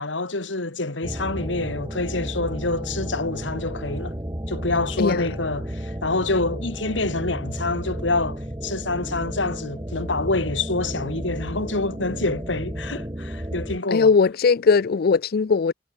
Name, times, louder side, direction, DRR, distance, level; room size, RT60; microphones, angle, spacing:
voice 1, 0.0-4.1 4.5-14.1, left 3 dB, 90° left, 2.5 m, -27 dB
sound 1, 1.0-13.8, equal, 20° right, 2.2 m, -32 dB
voice 2, 13.9-15.7, left 5 dB, 55° left, 0.4 m, -19 dB
head